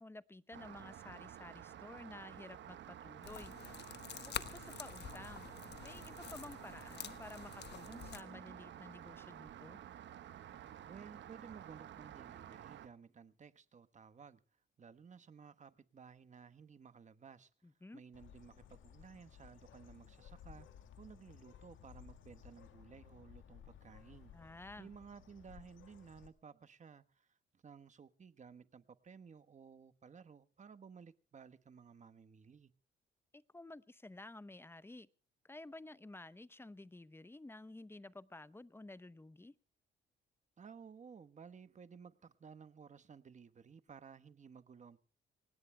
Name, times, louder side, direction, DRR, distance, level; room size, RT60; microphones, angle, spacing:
voice 1, 0.0-3.5 4.2-5.5 5.8-9.8 17.6-18.0 24.3-24.9 33.3-35.1 35.4-39.6, left 2 dB, 10° left, 0.7 m, -52 dB
Rain, 0.5-12.9, right 10 dB, 65° right, 1.2 m, -52 dB
sound 1, 3.2-8.2, left 9 dB, 60° left, 1.3 m, -48 dB
voice 2, 10.8-14.4 14.8-17.5 17.9-20.7 21.0-24.5 24.8-32.7 40.6-45.0, right 6 dB, 35° right, 1.2 m, -56 dB
Bird, 18.1-26.3, left 9 dB, 80° left, 2.2 m, -58 dB
25.5 x 19.0 x 2.2 m
cardioid pair, 90°, 20 cm